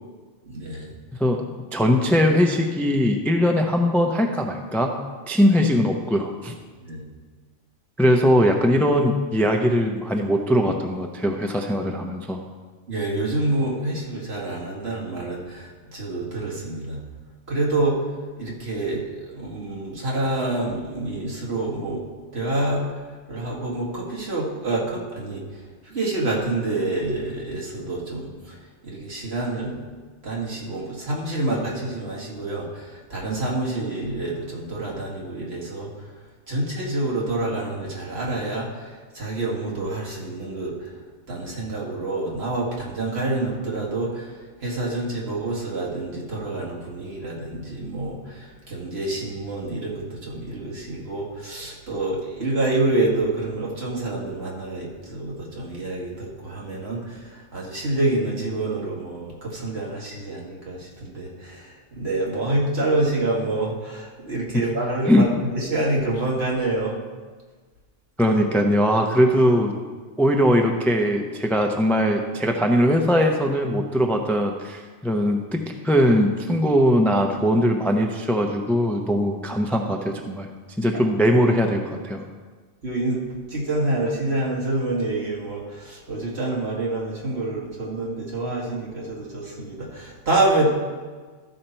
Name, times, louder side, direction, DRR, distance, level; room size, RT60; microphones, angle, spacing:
voice 1, 0.4-0.9 6.8-7.0 12.9-17.0 17.5-18.0 18.4-22.0 22.3-23.0 23.3-25.4 25.8-28.6 28.8-29.9 30.2-35.9 36.5-40.9 41.3-44.3 44.6-67.0 80.9-81.0 82.8-83.2 83.5-90.7, right 2 dB, 60° right, -3 dB, 2.1 m, -27 dB
voice 2, 1.7-5.0 5.3-6.6 8.0-12.4 64.5-64.6 65.1-65.3 68.2-69.7 70.2-80.5 80.8-82.3, equal, ahead, 3 dB, 0.4 m, -20 dB
13.5 x 5.5 x 4.4 m, 1.4 s
omnidirectional pair, 1.2 m